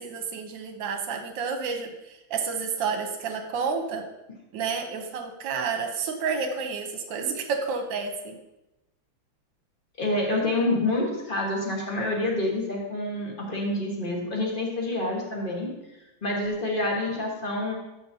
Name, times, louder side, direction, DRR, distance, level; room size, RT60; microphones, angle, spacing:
voice 1, 0.0-4.0 4.5-8.4, right 5 dB, 70° right, 5 dB, 1.5 m, -30 dB
voice 2, 10.0-15.7 16.2-17.7, left 2 dB, 30° left, -2 dB, 1.4 m, -27 dB
12.0 x 5.3 x 2.7 m, 0.98 s
omnidirectional pair, 2.2 m